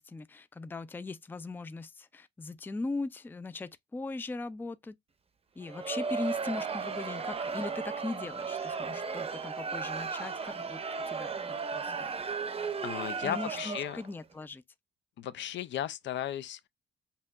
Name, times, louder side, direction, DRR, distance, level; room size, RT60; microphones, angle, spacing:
voice 1, 0.0-4.9 5.6-10.8 11.1-11.4 11.7-12.1 13.2-14.6, left 3 dB, 10° left, 0.4 m, -39 dB
Crowd, 5.6-14.1, right 5 dB, 30° right, 0.7 m, -35 dB
voice 2, 12.8-14.0 15.2-16.7, left 11 dB, 65° left, 0.5 m, -35 dB
5.5 x 2.8 x 2.4 m
cardioid pair, 90°, 20 cm